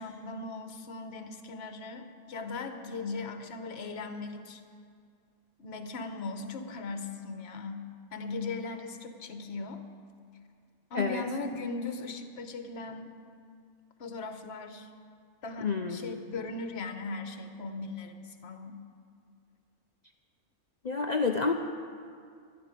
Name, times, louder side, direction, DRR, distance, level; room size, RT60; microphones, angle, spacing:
voice 1, 0.0-4.6 5.6-7.8 8.1-9.8 10.9-13.1 14.0-14.9 15.4-18.7, left 3 dB, 50° left, 7 dB, 1.2 m, -38 dB
voice 2, 15.6-16.2 20.8-21.5, left 4 dB, 80° left, 4 dB, 0.3 m, -29 dB
12.5 x 8.5 x 9.8 m, 2.2 s
omnidirectional pair, 1.6 m